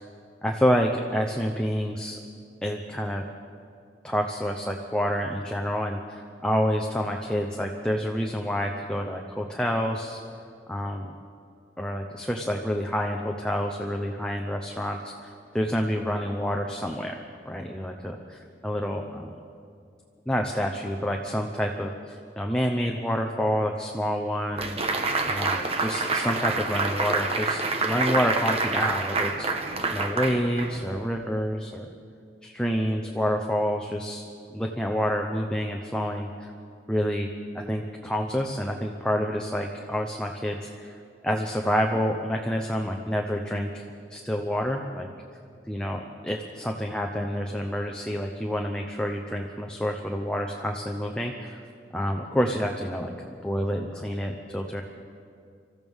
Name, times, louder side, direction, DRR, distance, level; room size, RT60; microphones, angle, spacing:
voice 1, 0.4-2.2 2.6-3.3 4.0-10.2 10.7-11.1 11.8-19.3 20.3-24.8 25.3-29.5 29.9-31.9 32.4-36.5 36.9-37.3 37.5-41.0 41.2-43.8 44.1-45.1 45.7-51.6 51.9-54.8, equal, 5° left, 2 dB, 0.7 m, -28 dB
sound 1, 24.6-31.0, right 3 dB, 35° right, 1.1 m, -27 dB
25.5 x 14.5 x 3.6 m, 2.4 s
head